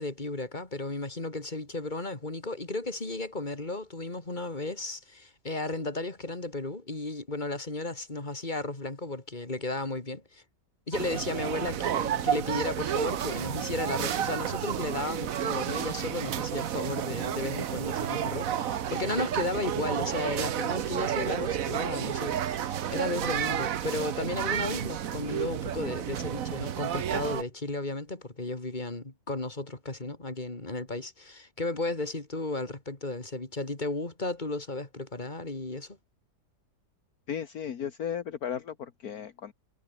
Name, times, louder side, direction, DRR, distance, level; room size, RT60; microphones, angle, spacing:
voice 1, 0.0-10.4 10.9-36.0, left 2 dB, 25° left, 3.5 m, -34 dB
sound 1, 10.9-27.4, right 10 dB, 60° right, 1.3 m, -31 dB
voice 2, 37.3-39.5, left 8 dB, 65° left, 1.7 m, -35 dB
omnidirectional pair, 1.7 m